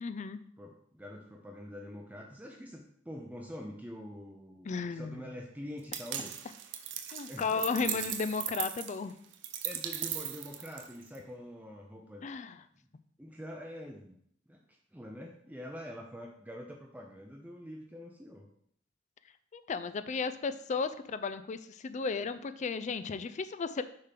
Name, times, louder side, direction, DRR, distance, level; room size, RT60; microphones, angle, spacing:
voice 1, 0.0-0.4 4.6-5.4 7.1-9.1 12.2-12.6 19.5-23.8, left 5 dB, 40° left, 12 dB, 0.4 m, -34 dB
voice 2, 0.6-6.3 7.3-8.1 9.6-12.3 12.8-12.9 13.2-14.2 14.5-14.6 14.9-18.5, equal, 10° right, 0 dB, 0.6 m, -45 dB
sound 1, 5.9-11.2, right 10 dB, 65° right, 0.6 m, -38 dB
6.5 x 3.7 x 5.8 m, 0.67 s
head